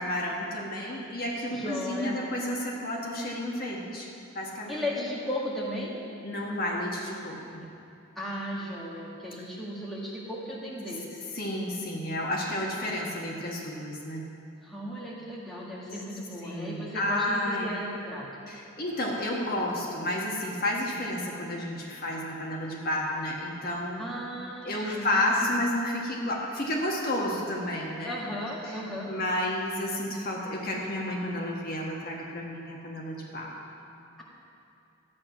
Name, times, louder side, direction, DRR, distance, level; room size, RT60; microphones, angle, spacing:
voice 1, 0.0-4.1 4.3-5.1 6.2-7.6 11.3-14.2 16.4-17.7 18.5-24.1 24.6-28.2 28.7-28.8 29.1-33.6, left 1 dB, 45° left, -2 dB, 1.4 m, -31 dB
voice 2, 1.5-2.2 4.7-5.9 8.1-11.1 14.6-18.3 24.0-25.5 28.0-29.1, equal, ahead, -6 dB, 1.6 m, -36 dB
12.5 x 8.8 x 6.0 m, 2.6 s
head